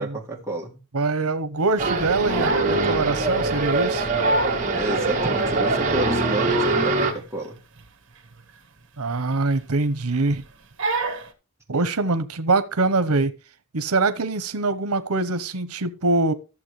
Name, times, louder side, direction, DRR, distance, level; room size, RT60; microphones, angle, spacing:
voice 1, 0.0-0.8 4.7-7.6, right 2 dB, 10° right, 1.9 m, -30 dB
voice 2, 0.9-4.1 9.0-10.4 11.7-13.3 13.7-16.3, right 3 dB, 90° right, 0.9 m, -23 dB
sound 1, 1.8-7.1, right 3 dB, 35° right, 2.0 m, -23 dB
Crying sobbing, 2.0-2.8 3.2-3.4 3.9-4.0 4.2-4.6 5.2-5.3 6.0-6.9 7.2-7.4 7.8-7.9 8.3-8.4 9.2-9.8 10.1-10.4 10.8-11.3, right 2 dB, 55° right, 1.6 m, -28 dB
14.0 x 7.0 x 3.2 m
head